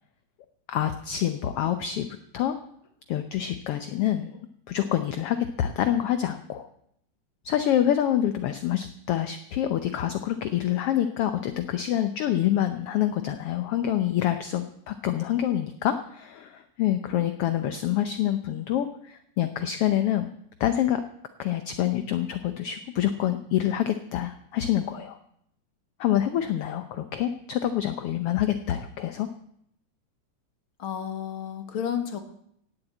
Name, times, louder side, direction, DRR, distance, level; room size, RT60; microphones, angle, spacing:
voice 1, 0.7-2.1 2.3-2.5 3.1-4.3 4.7-6.7 7.4-20.3 20.6-21.0 21.4-25.2 26.0-29.3, left 11 dB, 75° left, 9 dB, 1.3 m, -26 dB
voice 2, 30.8-32.2, left 8 dB, 50° left, 7 dB, 2.0 m, -31 dB
17.0 x 8.0 x 8.5 m, 0.73 s
omnidirectional pair, 3.5 m